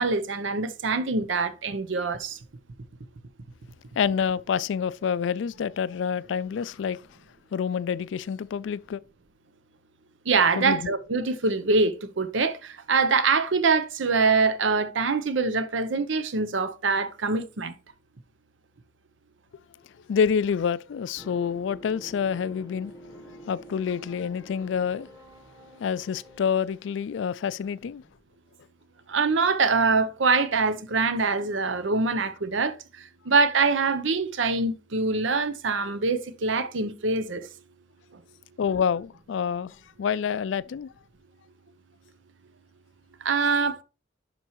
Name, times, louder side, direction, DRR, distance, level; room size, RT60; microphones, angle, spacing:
voice 1, 0.0-2.4 10.3-17.7 29.1-37.5 38.1-38.2 43.2-43.8, right 4 dB, 85° right, 0.7 m, -24 dB
voice 2, 4.0-7.0 7.5-9.0 10.6-10.9 20.1-25.1 25.8-28.0 38.6-40.9, left 7 dB, 75° left, 0.3 m, -27 dB
sound 1, 21.2-26.9, equal, 20° right, 1.4 m, -47 dB
11.0 x 4.5 x 3.0 m
head